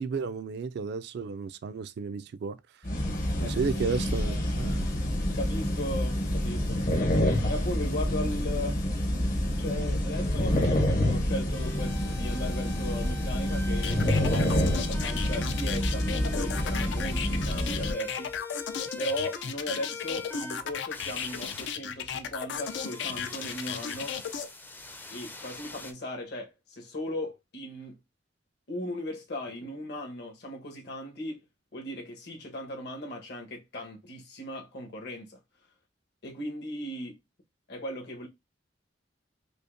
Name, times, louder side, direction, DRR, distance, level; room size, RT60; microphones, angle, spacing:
voice 1, 0.0-2.6 3.4-4.9, right 5 dB, 65° right, 0.3 m, -33 dB
sound 1, 2.8-17.9, left 1 dB, 50° left, 0.8 m, -27 dB
voice 2, 5.3-6.8 7.5-8.8 9.6-18.3 19.0-24.2 25.1-28.0 28.7-31.4 31.7-35.4 36.2-37.2 37.7-38.3, left 1 dB, 65° left, 1.1 m, -37 dB
sound 2, 11.5-20.6 20.9-21.7 22.6-25.9, left 3 dB, 10° left, 0.4 m, -43 dB
sound 3, 13.8-24.5, left 7 dB, 90° left, 0.5 m, -35 dB
5.2 x 2.1 x 2.5 m
head